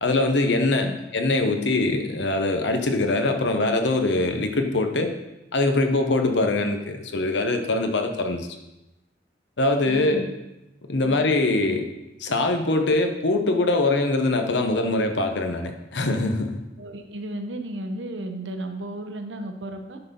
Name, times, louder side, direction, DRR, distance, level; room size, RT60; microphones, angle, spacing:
voice 1, 0.0-5.1 5.5-8.5 9.6-10.2 10.9-11.9 12.2-16.6, left 2 dB, 75° left, 6 dB, 0.9 m, -23 dB
voice 2, 9.8-10.3 11.0-11.2 16.8-20.0, right 1 dB, 80° right, 6 dB, 0.9 m, -34 dB
9.6 x 4.1 x 5.4 m, 0.95 s
head